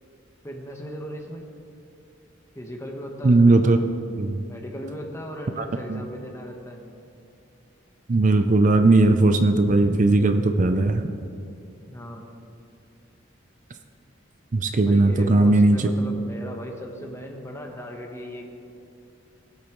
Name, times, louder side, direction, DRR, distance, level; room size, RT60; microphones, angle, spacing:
voice 1, 0.4-1.5 2.5-3.5 4.5-6.8 11.9-12.2 14.9-18.4, equal, 15° left, 2 dB, 1.1 m, -37 dB
voice 2, 3.2-3.8 4.2-4.4 5.6-6.0 8.1-11.0 14.5-15.9, right 2 dB, 40° right, 7 dB, 0.5 m, -18 dB
19.0 x 8.4 x 3.1 m, 2.6 s
head